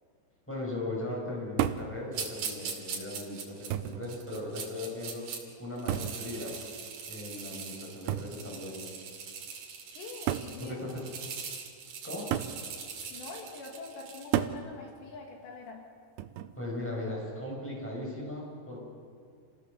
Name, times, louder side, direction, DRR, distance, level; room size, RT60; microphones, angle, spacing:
voice 1, 0.5-5.3 5.6-6.6 7.1-8.8 10.6-11.0 12.0-12.3 16.6-18.8, left 1 dB, 5° left, -3 dB, 6.4 m, -38 dB
sound 1, 1.6-2.0 3.0-3.1 3.7-4.1 5.9-6.2 8.1-8.4 9.4-9.5 10.3-10.6 12.3-12.6 14.3-14.6 16.2-16.6, right 12 dB, 80° right, 2.7 m, -31 dB
sound 2, 2.1-5.4 5.8-14.4, right 6 dB, 60° right, 4.1 m, -41 dB
voice 2, 10.0-10.8 13.1-15.8, left 3 dB, 75° left, 0 dB, 4.4 m, -44 dB
28.5 x 17.0 x 7.0 m, 2.2 s
omnidirectional pair, 5.1 m